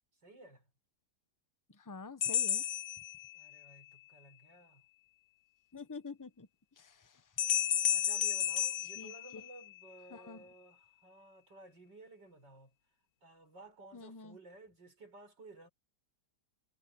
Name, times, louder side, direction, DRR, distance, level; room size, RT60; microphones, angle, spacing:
voice 1, 0.2-0.6 3.3-4.8 7.9-12.7 13.2-15.7, right 2 dB, 70° right, 7.3 m, -55 dB
voice 2, 1.8-2.6 5.7-6.5 6.8-7.2 9.0-9.4 10.1-10.4 13.9-14.4, left 4 dB, 15° left, 0.8 m, -47 dB
sound 1, 2.2-3.7 7.4-9.9, left 9 dB, 60° left, 1.2 m, -33 dB
omnidirectional pair, 2.0 m